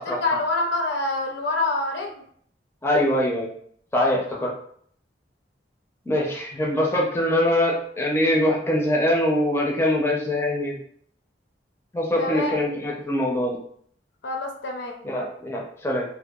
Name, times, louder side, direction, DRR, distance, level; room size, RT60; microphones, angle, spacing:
voice 1, 0.0-2.1 12.2-12.6 14.2-15.0, left 2 dB, 70° left, 2 dB, 0.5 m, -26 dB
voice 2, 2.8-3.5 3.9-4.5 6.1-10.8 11.9-13.6 15.0-16.0, left 1 dB, 15° left, -2 dB, 0.4 m, -23 dB
2.7 x 2.1 x 2.2 m, 0.62 s
head